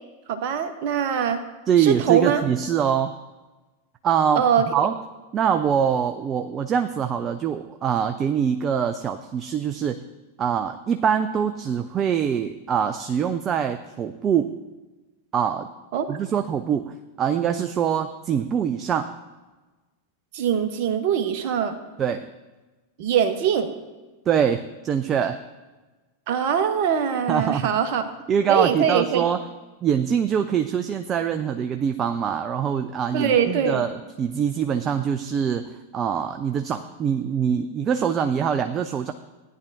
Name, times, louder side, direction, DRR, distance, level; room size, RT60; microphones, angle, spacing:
voice 1, 0.3-1.4 1.8-2.4 4.4-4.7 15.9-16.2 20.3-21.8 23.0-23.7 26.3-28.0 28.5-29.2 33.1-33.8, right 8 dB, 45° right, 8 dB, 0.9 m, -22 dB
voice 2, 1.7-3.1 4.0-4.4 4.7-4.9 5.3-10.0 10.4-14.5 15.3-15.7 16.1-19.1 22.0-22.3 24.3-25.4 27.3-27.7 28.3-29.4 29.8-39.1, right 8 dB, 25° right, 8 dB, 0.4 m, -24 dB
16.0 x 10.0 x 2.6 m, 1.2 s
figure-of-eight pair, 90°, 0 cm